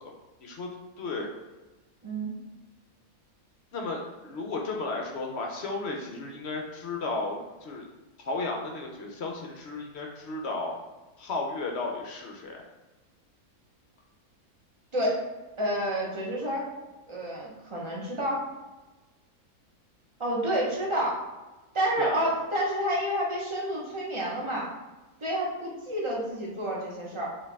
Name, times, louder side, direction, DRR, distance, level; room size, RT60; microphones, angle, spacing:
voice 1, 0.4-1.3 3.7-7.9 8.2-10.7 11.2-12.6 22.0-22.3, left 3 dB, 60° left, 1 dB, 0.8 m, -34 dB
voice 2, 15.6-16.6 17.1-18.4 20.2-21.2 21.7-24.7 25.2-27.3, right 1 dB, 25° right, -4 dB, 1.0 m, -29 dB
4.4 x 3.2 x 3.5 m, 1.1 s
omnidirectional pair, 1.6 m